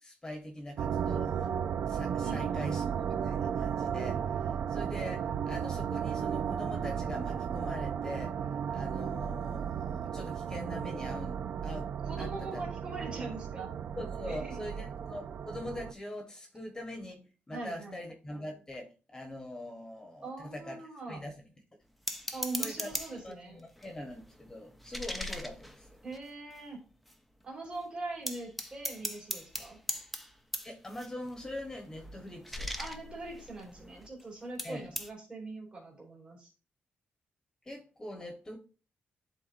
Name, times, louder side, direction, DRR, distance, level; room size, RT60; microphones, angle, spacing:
voice 1, 0.0-1.5 1.8-8.4 8.7-11.9 12.2-12.7 14.0-17.2 17.5-20.8 21.1-21.4 22.6-23.0 23.2-26.0 30.6-32.8 34.6-34.9 37.6-38.6, left 1 dB, 15° left, 1.2 m, -43 dB
sound 1, 0.8-15.9, right 8 dB, 60° right, 0.3 m, -34 dB
voice 2, 12.1-13.7 14.2-14.6 17.5-18.0 20.2-21.2 22.3-23.6 26.0-26.8 27.4-29.8 32.7-36.5, right 2 dB, 30° right, 2.8 m, -42 dB
sound 2, 22.1-23.3 23.8-26.6 27.1-27.2 27.4-27.8 28.3-34.2 34.6-35.1, equal, ahead, 0.6 m, -40 dB
10.5 x 3.8 x 2.5 m
cardioid pair, 110°, 4 cm